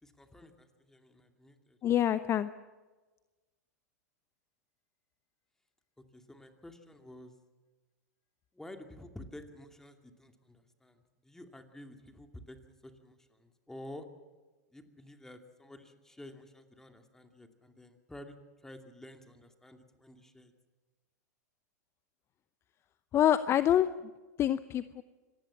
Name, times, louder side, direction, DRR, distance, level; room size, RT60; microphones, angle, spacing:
voice 1, 0.0-1.8 6.1-7.3 8.5-12.6 12.8-14.1 14.7-20.5, left 1 dB, 5° left, 6 dB, 2.6 m, -51 dB
voice 2, 1.8-2.5 23.1-23.9 24.4-25.0, left 11 dB, 30° left, 14 dB, 0.8 m, -26 dB
25.0 x 19.5 x 7.3 m, 1.2 s
hypercardioid pair, 110°, 9 cm